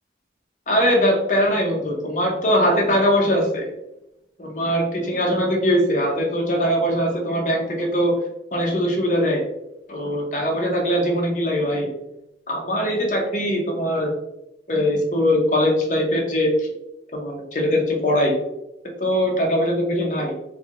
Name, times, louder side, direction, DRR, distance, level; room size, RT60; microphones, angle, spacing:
voice 1, 0.7-3.7 4.4-8.1 8.5-9.4 9.9-11.9 12.5-14.1 14.7-16.7 17.1-18.3 19.0-20.4, equal, 40° left, 0 dB, 0.7 m, -21 dB
3.4 x 2.2 x 3.7 m, 0.87 s
head